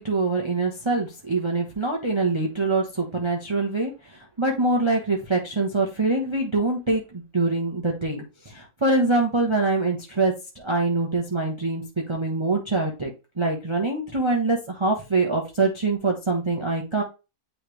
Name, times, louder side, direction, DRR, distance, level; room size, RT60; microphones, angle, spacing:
voice 1, 0.0-13.1 13.4-17.0, right 3 dB, 20° right, -1 dB, 0.9 m, -24 dB
9.0 x 3.3 x 3.2 m, 0.28 s
omnidirectional pair, 1.6 m